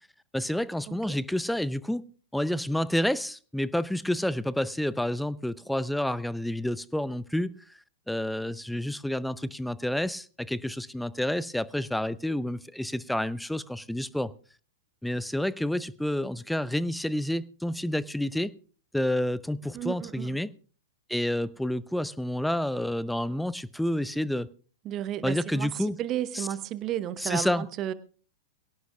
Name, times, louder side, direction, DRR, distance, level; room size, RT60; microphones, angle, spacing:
voice 1, 0.3-2.0 2.3-7.5 8.1-14.3 15.0-18.5 18.9-20.5 21.1-24.5 25.2-26.0 26.3-26.5 27.2-27.7, left 1 dB, ahead, 0.6 m, -29 dB
voice 2, 0.9-1.2 19.7-20.3 24.8-27.9, right 11 dB, 30° right, 1.0 m, -33 dB
22.5 x 17.5 x 2.4 m
figure-of-eight pair, 100°, 0 cm